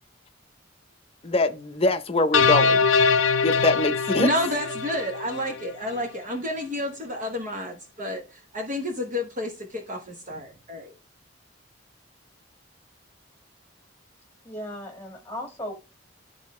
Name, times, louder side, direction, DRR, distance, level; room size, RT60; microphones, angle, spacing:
voice 1, 1.2-2.8 3.4-4.3, left 2 dB, 30° left, 0.6 m, -23 dB
sound 1, 2.3-5.7, left 5 dB, 75° left, 0.6 m, -22 dB
voice 2, 4.2-11.0, left 1 dB, 35° right, 1.0 m, -30 dB
voice 3, 14.4-15.7, left 1 dB, 10° left, 1.6 m, -36 dB
11.5 x 3.9 x 3.1 m
head